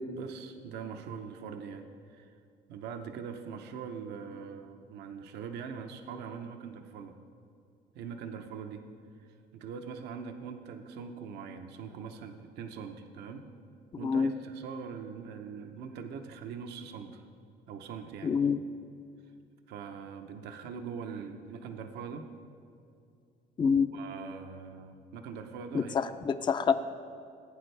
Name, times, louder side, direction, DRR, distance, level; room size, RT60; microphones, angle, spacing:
voice 1, 0.2-2.3 2.7-7.2 7.9-8.9 9.2-13.5 14.0-17.2 17.7-18.4 19.7-22.3 23.9-26.1, right 6 dB, 80° right, 6 dB, 0.8 m, -42 dB
voice 2, 18.2-18.6 23.6-23.9 25.7-26.7, left 6 dB, 30° left, 11 dB, 0.4 m, -26 dB
16.0 x 8.9 x 3.3 m, 2.4 s
cardioid pair, 110°, 17 cm